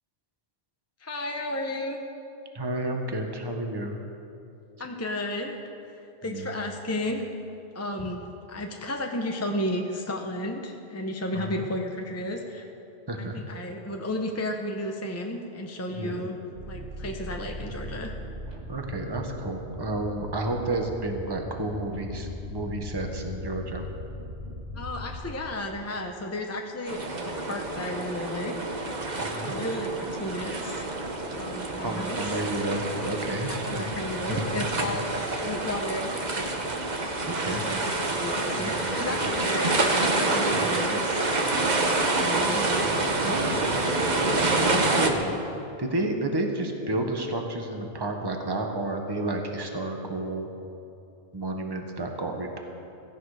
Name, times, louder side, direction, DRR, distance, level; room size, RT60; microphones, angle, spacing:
voice 1, 1.0-2.0 4.8-5.6 5.9-7.2 7.7-8.2 8.5-12.7 13.2-16.4 16.6-18.1 24.7-28.6 29.4-30.9 31.4-32.3 33.4-36.5 37.3-39.8 40.2-41.2 42.0-42.8 44.2-44.4, left 1 dB, 15° left, 2 dB, 0.9 m, -33 dB
voice 2, 2.5-4.0 6.2-6.5 11.3-11.7 13.1-13.4 15.9-16.2 18.7-23.8 29.2-29.5 31.8-33.9 34.3-34.4 34.8-35.0 37.2-37.6 38.6-39.2 43.2-43.7 44.3-45.4 45.8-50.5 51.3-52.6, right 2 dB, 20° right, 3 dB, 1.3 m, -31 dB
sound 1, 16.5-25.3, left 1 dB, 90° right, 2.0 m, -39 dB
sound 2, 26.9-45.1, right 2 dB, 40° right, 1.3 m, -27 dB
17.5 x 15.0 x 5.0 m, 2.8 s
omnidirectional pair, 1.2 m